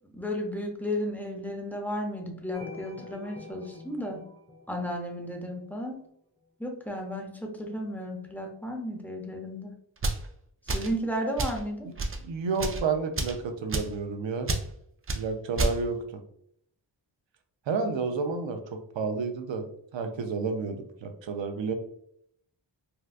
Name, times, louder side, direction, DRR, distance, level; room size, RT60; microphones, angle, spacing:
voice 1, 0.1-4.2 4.7-6.0 6.6-9.7 10.7-11.9, equal, 5° left, 2 dB, 0.7 m, -33 dB
sound 1, 2.5-5.7, left 2 dB, 25° left, 1.1 m, -46 dB
sound 2, 10.0-10.2 10.7-11.0 11.4-11.6 12.0-12.2 12.5-12.8 13.2-13.4 13.7-13.9 14.5-14.7 15.1-15.2 15.6-15.8, right 2 dB, 30° right, 0.5 m, -29 dB
voice 2, 12.2-14.5 15.2-16.2 17.7-19.7 19.9-21.7, right 4 dB, 80° right, 6 dB, 0.5 m, -30 dB
3.6 x 2.3 x 2.4 m, 0.70 s
wide cardioid pair, 55°, 45 cm